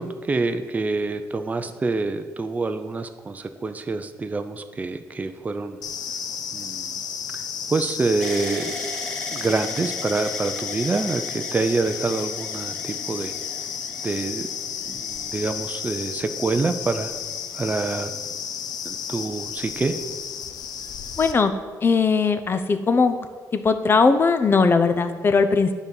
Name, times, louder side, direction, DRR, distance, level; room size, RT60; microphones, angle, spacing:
voice 1, 0.0-5.8 6.5-7.0 7.3-7.4 7.7-8.7 9.3-13.3 14.0-14.5 14.9-17.1 17.5-18.1 18.9-20.0, right 3 dB, 25° right, 8 dB, 0.5 m, -26 dB
sound 1, 5.8-21.3, left 7 dB, 75° left, 0.6 m, -32 dB
sound 2, 8.2-16.2 16.9-17.6, equal, 10° left, 2.1 m, -39 dB
voice 2, 21.2-21.5 21.8-23.3 23.5-25.7, left 4 dB, 35° left, 9 dB, 0.6 m, -19 dB
9.7 x 4.0 x 7.0 m, 1.5 s
cardioid pair, 125°, 7 cm